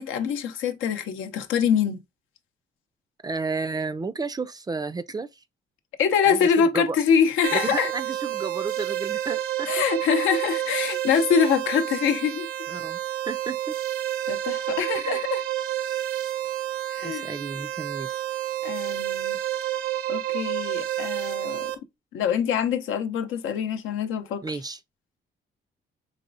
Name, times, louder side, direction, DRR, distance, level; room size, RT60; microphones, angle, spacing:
voice 1, 0.0-2.0 6.0-7.9 9.7-12.5 14.3-15.4 16.9-17.3 18.6-19.4 20.1-21.7 22.1-24.4, left 7 dB, 85° left, 0.6 m, -24 dB
voice 2, 3.2-5.4 6.3-7.0 7.5-9.8 12.7-13.0 13.2-13.8 15.0-15.2 17.0-18.2 24.4-24.8, right 4 dB, 20° right, 0.3 m, -32 dB
sound 1, 7.4-21.8, right 12 dB, 85° right, 0.7 m, -29 dB
4.1 x 3.1 x 2.6 m
cardioid pair, 90°, 20 cm